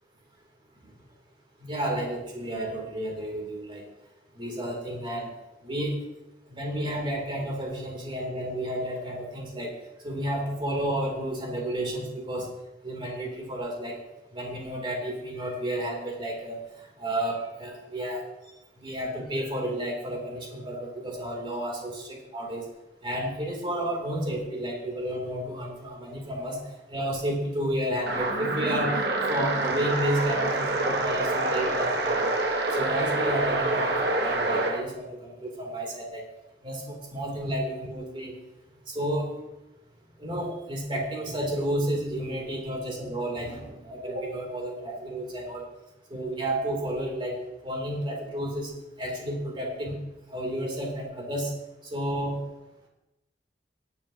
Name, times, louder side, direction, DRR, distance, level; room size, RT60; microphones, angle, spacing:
voice 1, 1.6-3.8 4.3-5.3 5.6-5.9 6.5-9.7 10.0-12.5 12.8-14.0 14.3-16.7 17.0-18.2 18.8-22.6 23.0-26.6 26.9-29.0 29.3-32.3 32.7-36.2 36.6-38.3 38.9-39.3 40.2-45.6 46.1-47.4 47.6-48.7 49.0-50.0 50.3-51.5 51.9-52.4, right 1 dB, 30° right, -1 dB, 2.9 m, -31 dB
sound 1, 28.1-34.8, right 2 dB, 65° right, 1.3 m, -27 dB
17.5 x 9.8 x 2.8 m, 0.96 s
head